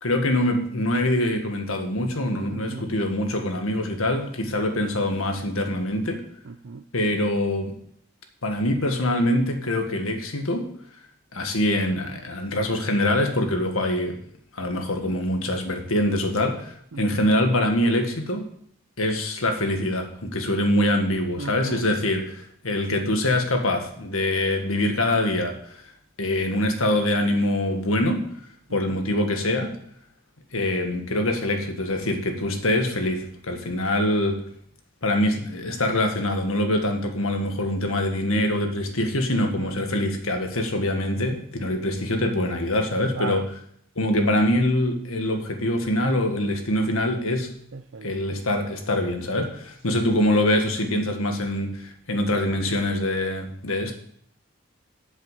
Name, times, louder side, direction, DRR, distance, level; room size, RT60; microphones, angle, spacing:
voice 1, 0.0-6.2 6.9-7.7 8.4-10.7 11.3-14.2 14.5-18.5 19.0-25.8 26.2-28.2 28.7-29.7 30.5-34.4 35.0-43.4 44.0-47.6 48.0-53.9, left 1 dB, 85° left, 4 dB, 1.8 m, -24 dB
voice 2, 2.5-2.9 4.7-4.8 6.5-6.8 16.9-17.3 21.4-21.8 28.7-29.0 39.3-39.8 43.1-43.5 47.7-48.1 49.9-50.2, right 4 dB, 60° right, 9 dB, 0.5 m, -37 dB
7.8 x 7.5 x 7.4 m, 0.65 s
head